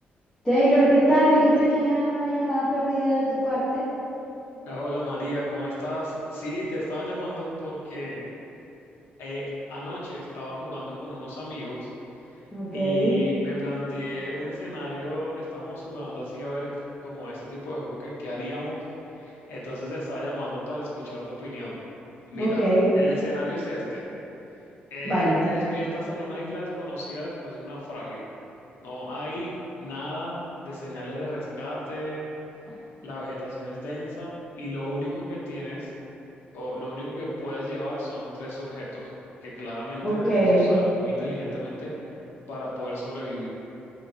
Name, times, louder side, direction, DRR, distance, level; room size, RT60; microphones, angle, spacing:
voice 1, 0.4-3.9 12.5-13.2 22.3-22.9 25.0-25.4 40.0-40.7, right 1 dB, 15° left, -15 dB, 0.7 m, -21 dB
voice 2, 4.7-8.2 9.2-11.9 12.3-12.4 12.7-16.7 17.0-18.8 19.1-21.8 22.3-22.6 23.0-24.0 24.9-28.2 28.8-32.3 33.0-35.9 36.5-39.1 39.4-41.9 42.5-43.5, equal, 85° left, -5 dB, 0.6 m, -34 dB
2.9 x 2.5 x 2.5 m, 2.9 s
cardioid pair, 155°, 4 cm